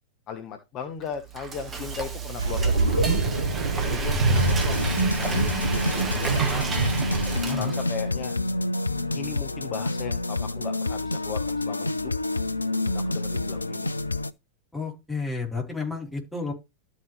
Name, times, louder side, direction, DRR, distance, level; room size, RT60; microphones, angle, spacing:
voice 1, 0.3-3.0 3.8-6.7 7.5-8.3 9.1-12.1 12.9-13.9, left 7 dB, 35° left, 6 dB, 1.1 m, -37 dB
Frying (food), 1.0-8.1, right 5 dB, 20° right, 1.5 m, -33 dB
sound 1, 2.4-7.4, right 3 dB, 70° right, 1.4 m, -25 dB
sound 2, 4.3-14.3, left 2 dB, 80° left, 0.4 m, -28 dB
voice 2, 14.7-16.5, left 3 dB, ahead, -2 dB, 3.9 m, -31 dB
13.0 x 5.1 x 3.3 m, 0.24 s
figure-of-eight pair, 90°, 0 cm